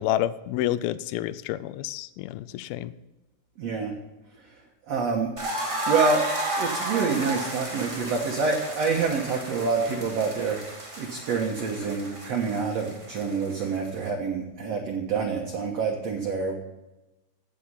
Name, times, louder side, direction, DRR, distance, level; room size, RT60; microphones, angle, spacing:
voice 1, 0.0-2.9, left 13 dB, 80° left, 14 dB, 2.3 m, -29 dB
voice 2, 3.6-3.9 4.9-5.3 5.9-6.2 6.6-10.6 11.0-16.5, right 5 dB, 60° right, 1 dB, 1.7 m, -27 dB
sound 1, 5.4-14.1, right 1 dB, 25° right, 0.7 m, -33 dB
16.0 x 6.5 x 5.5 m, 1.0 s
omnidirectional pair, 4.7 m